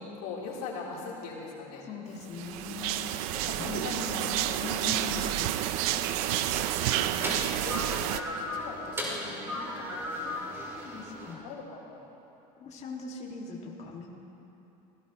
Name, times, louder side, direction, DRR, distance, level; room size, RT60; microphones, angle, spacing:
voice 1, 0.0-1.9 3.0-4.9 5.8-6.0 6.9-7.4 7.6-10.8 11.2-12.1, left 4 dB, 80° left, -4 dB, 3.8 m, -42 dB
voice 2, 1.8-3.0 3.6-5.6 10.2-10.3 10.8-11.4 12.6-14.1, left 5 dB, 35° left, -2 dB, 2.2 m, -40 dB
sound 1, 2.3-8.2, right 12 dB, 80° right, 0.7 m, -30 dB
sound 2, 6.1-11.3, left 1 dB, 15° right, 3.8 m, -37 dB
24.0 x 17.5 x 3.1 m, 3.0 s
supercardioid pair, 120°, 19 cm